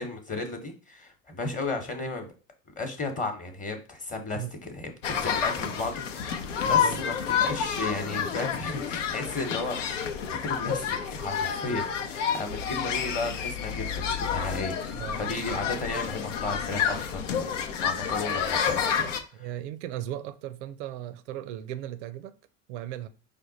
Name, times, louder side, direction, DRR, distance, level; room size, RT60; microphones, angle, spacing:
voice 1, 0.0-2.3 2.8-9.8 10.4-17.5 17.8-19.1 19.3-19.5, left 2 dB, 20° left, 1.0 m, -34 dB
sound 1, 5.0-19.2, left 7 dB, 85° left, 0.7 m, -29 dB
voice 2, 6.6-7.0 14.9-15.3 19.4-22.3 22.7-23.1, right 12 dB, 70° right, 0.6 m, -37 dB
5.1 x 2.2 x 3.9 m
hypercardioid pair, 80°, 36 cm